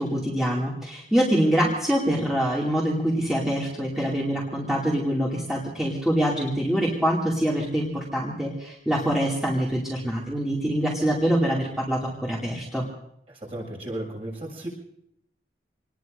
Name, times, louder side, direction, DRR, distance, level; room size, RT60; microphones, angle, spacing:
voice 1, 0.0-12.9, equal, ahead, -6 dB, 2.5 m, -25 dB
voice 2, 13.3-14.7, right 1 dB, 35° right, -1 dB, 6.7 m, -34 dB
27.0 x 20.0 x 2.7 m, 0.74 s
head